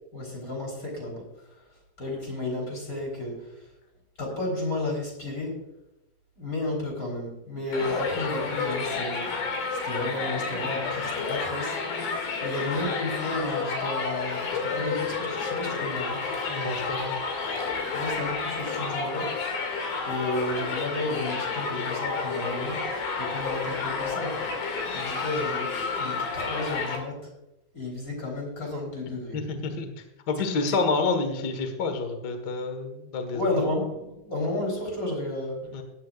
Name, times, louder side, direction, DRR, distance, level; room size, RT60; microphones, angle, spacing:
voice 1, 0.1-1.3 2.0-3.5 4.2-5.6 6.4-9.3 9.8-11.8 12.4-16.2 17.9-19.4 20.0-22.8 23.2-24.4 24.9-27.3 27.7-29.4 30.7-30.8 33.3-35.6, left 2 dB, 25° left, -1 dB, 3.9 m, -32 dB
Crowd, 7.7-27.0, left 4 dB, 90° left, 4.2 m, -30 dB
voice 2, 16.5-17.2 29.3-29.9 30.3-33.6 35.7-35.8, left 3 dB, 55° left, 6 dB, 1.1 m, -28 dB
18.0 x 10.5 x 2.5 m, 0.93 s
omnidirectional pair, 4.2 m